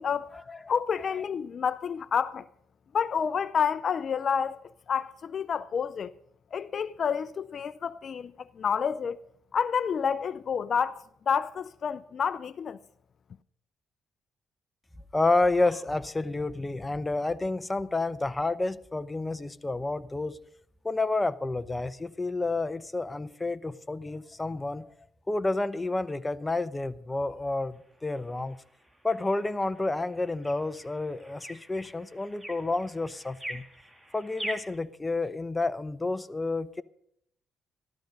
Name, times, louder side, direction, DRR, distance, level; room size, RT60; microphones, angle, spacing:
voice 1, 0.7-2.4 2.9-4.6 4.9-6.1 6.5-9.2 9.5-12.8, left 7 dB, 50° left, 0.4 m, -29 dB
voice 2, 15.1-20.4 20.8-24.9 25.3-28.6 29.0-33.6 34.1-36.8, left 2 dB, 15° left, 0.7 m, -30 dB
sound 1, 27.7-34.8, equal, 5° right, 2.1 m, -44 dB
13.5 x 13.0 x 5.3 m
cardioid pair, 90°, 0 cm